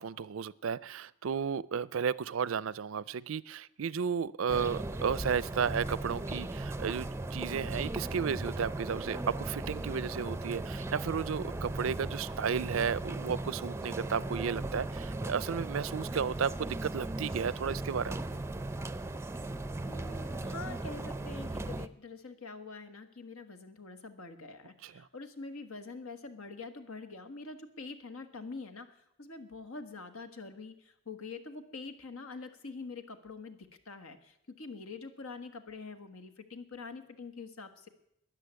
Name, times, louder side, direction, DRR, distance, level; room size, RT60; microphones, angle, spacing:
voice 1, 0.0-18.2 24.8-24.9, right 6 dB, 70° right, 21 dB, 0.5 m, -33 dB
sound 1, 4.5-21.9, right 2 dB, 15° right, 0.5 m, -37 dB
voice 2, 19.8-37.9, left 3 dB, 80° left, 9 dB, 1.5 m, -45 dB
13.5 x 10.5 x 9.4 m, 0.80 s
head